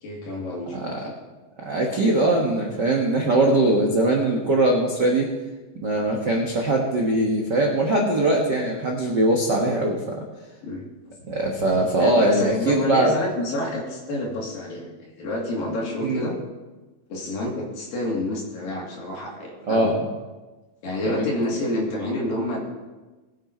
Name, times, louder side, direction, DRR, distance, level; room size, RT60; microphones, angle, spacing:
voice 1, 0.0-1.1 10.6-10.8 12.0-16.4 17.1-20.0 20.8-22.6, left 1 dB, 70° left, -3 dB, 4.5 m, -28 dB
voice 2, 1.6-5.3 5.8-10.2 11.2-13.1 16.0-16.3 19.7-20.0 21.1-21.3, right 2 dB, 75° right, 0 dB, 1.0 m, -21 dB
20.0 x 8.9 x 4.4 m, 1.2 s
omnidirectional pair, 4.2 m